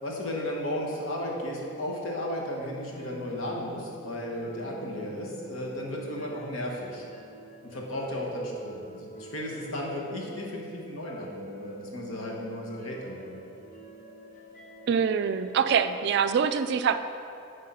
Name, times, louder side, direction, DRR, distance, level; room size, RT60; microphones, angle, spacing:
voice 1, 0.0-7.0 7.6-13.4, left 1 dB, 80° left, -1 dB, 1.3 m, -34 dB
sound 1, 2.9-16.2, right 1 dB, 40° left, 1.0 m, -45 dB
voice 2, 14.9-17.0, right 6 dB, 55° right, 10 dB, 0.3 m, -24 dB
9.7 x 3.7 x 5.4 m, 2.6 s
head